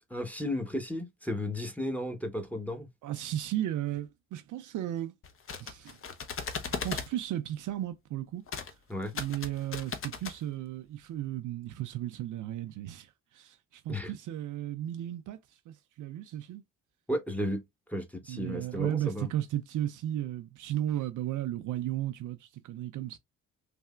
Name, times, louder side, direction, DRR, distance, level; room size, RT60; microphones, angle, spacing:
voice 1, 0.1-2.9 8.9-9.1 13.9-14.1 17.1-17.6 17.9-19.3, left 1 dB, 5° left, 0.9 m, -34 dB
voice 2, 3.0-5.1 5.6-6.0 6.7-8.8 9.1-16.6 18.3-23.2, right 12 dB, 50° right, 0.5 m, -35 dB
sound 1, 5.2-7.1 8.5-8.7 9.0-10.4, left 5 dB, 35° left, 0.7 m, -37 dB
3.2 x 2.7 x 2.3 m
hypercardioid pair, 45°, 39 cm